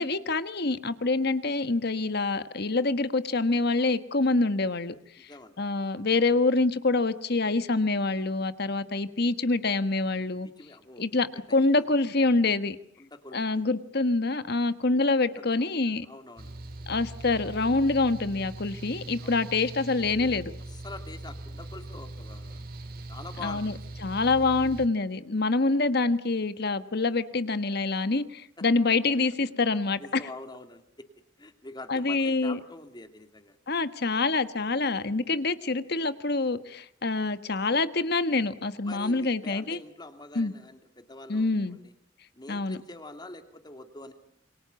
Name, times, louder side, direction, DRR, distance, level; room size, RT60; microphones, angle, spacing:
voice 1, 0.0-4.9 5.2-5.3 5.6-10.5 11.0-12.8 13.3-16.1 16.9-20.5 23.4-23.7 24.0-30.0 31.9-32.6 33.7-39.8 40.3-40.5 41.3-41.8 42.5-42.8, left 3 dB, 60° left, 12 dB, 1.4 m, -26 dB
voice 2, 5.2-5.6 10.4-11.0 11.3-11.6 13.0-13.6 15.2-15.6 16.0-16.5 19.2-19.4 20.7-22.6 23.1-23.6 23.9-24.1 28.6-28.7 30.0-31.1 31.4-33.6 38.9-41.9 42.3-44.1, left 2 dB, 25° left, 7 dB, 2.6 m, -45 dB
Mechanical fan, 16.4-24.9, right 2 dB, 50° right, 3.3 m, -41 dB
28.0 x 24.0 x 7.0 m, 0.67 s
head